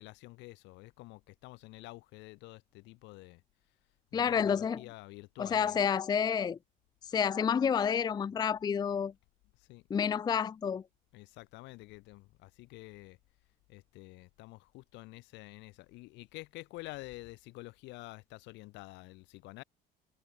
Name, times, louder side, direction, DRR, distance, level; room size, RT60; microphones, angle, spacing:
voice 1, 0.0-3.4 4.1-5.8 9.6-9.8 11.1-13.2 13.7-19.6, left 21 dB, 75° left, 3.8 m, -49 dB
voice 2, 4.1-4.8 5.4-6.6 7.0-9.1 9.9-10.8, left 7 dB, 20° left, 0.5 m, -29 dB
cardioid pair, 125°, 19 cm